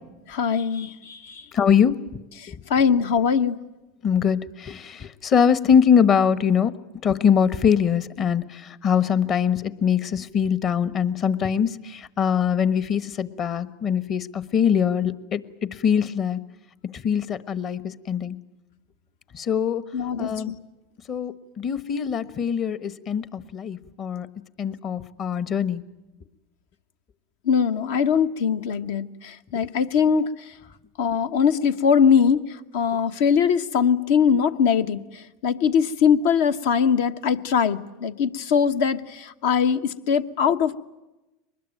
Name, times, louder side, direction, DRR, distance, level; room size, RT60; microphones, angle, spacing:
voice 1, 0.3-1.4 2.7-3.6 19.9-20.5 27.5-30.3 31.0-32.4 32.7-35.0 35.4-40.8, left 7 dB, 75° left, 10 dB, 1.2 m, -21 dB
voice 2, 1.5-1.9 2.5-2.6 4.0-6.7 7.0-15.4 15.8-16.4 16.9-18.4 19.3-19.8 20.2-20.5 21.1-24.3 24.6-25.8, left 7 dB, 40° left, 14 dB, 1.3 m, -22 dB
23.5 x 20.5 x 9.2 m, 1.0 s
hypercardioid pair, 100°, 0 cm